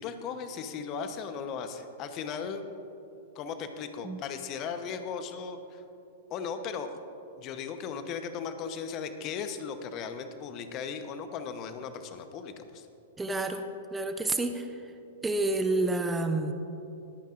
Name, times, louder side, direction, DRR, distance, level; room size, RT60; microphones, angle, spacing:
voice 1, 0.0-2.6 3.3-5.8 6.3-7.0 7.4-12.9, left 6 dB, 35° left, 8 dB, 0.9 m, -37 dB
voice 2, 13.2-14.9 15.2-16.5, right 2 dB, 10° right, 7 dB, 0.6 m, -29 dB
21.0 x 9.2 x 2.5 m, 2.8 s
hypercardioid pair, 110°, 0 cm